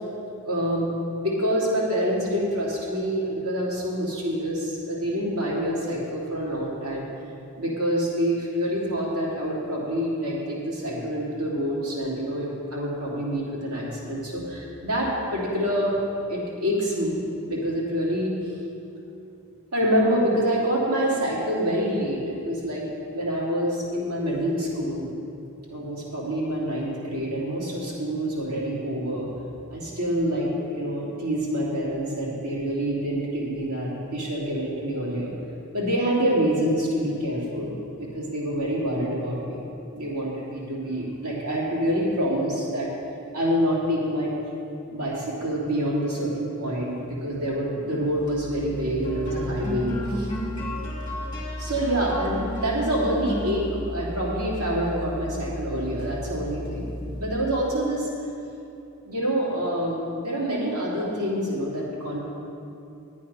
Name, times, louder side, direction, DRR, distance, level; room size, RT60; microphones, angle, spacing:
voice 1, 0.4-0.9 1.2-7.1 7.6-16.0 16.3-17.2 17.5-18.3 19.7-22.9 23.1-25.1 25.6-29.2 29.7-35.3 35.7-39.6 39.9-42.9 43.3-44.3 44.9-50.3 51.6-58.1 59.0-62.2, equal, 90° right, -5 dB, 3.0 m, -26 dB
sound 1, 48.1-57.7, equal, 20° left, 2.4 m, -33 dB
11.0 x 9.1 x 5.6 m, 2.8 s
head